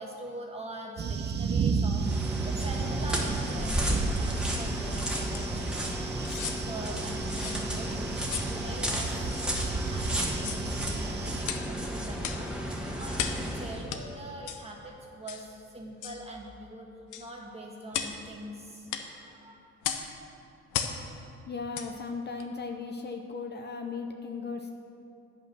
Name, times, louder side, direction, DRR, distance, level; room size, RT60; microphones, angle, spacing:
voice 1, 0.0-9.3 9.6-16.9 17.2-19.7, right 1 dB, 20° right, -1 dB, 1.5 m, -43 dB
sound 1, 1.0-11.4, right 5 dB, 35° right, 0.5 m, -33 dB
sound 2, 1.9-13.9, equal, 5° right, 1.3 m, -33 dB
sound 3, 5.3-5.5 6.2-6.6 7.4-7.6 8.3-8.5 9.2-9.4 10.3-10.7 11.4-11.7 12.2-12.5 13.1-13.5 13.9-14.0 14.5-14.6 15.3-15.5 16.0-16.2 17.1-17.3 17.9-18.2 18.9-19.1 19.8-20.1 20.7-21.0 21.7-21.9 22.4-22.5, left 8 dB, 80° left, 0.7 m, -35 dB
voice 2, 21.5-24.7, left 4 dB, 35° left, 3 dB, 0.6 m, -37 dB
8.6 x 5.4 x 6.2 m, 2.7 s
cardioid pair, 90°, 30 cm